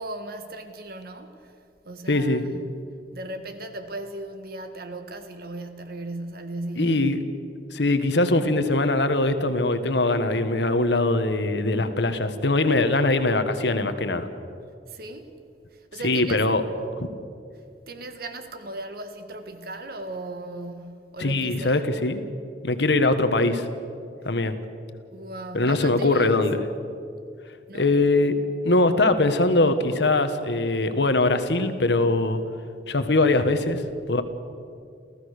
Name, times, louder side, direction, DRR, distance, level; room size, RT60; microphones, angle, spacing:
voice 1, 0.0-1.6 1.8-2.8 3.1-7.3 14.9-15.3 15.7-16.4 17.5-21.8 25.1-26.3 27.7-27.9, right 2 dB, 60° right, 1.7 m, -37 dB
voice 2, 2.1-2.4 6.8-7.2 7.7-14.3 16.0-16.6 17.0-17.1 21.2-22.2 22.6-23.7 24.2-24.5 25.5-26.6 27.7-28.3 28.6-32.4 32.9-34.2, left 2 dB, 75° left, 1.4 m, -22 dB
29.0 x 15.5 x 6.6 m
head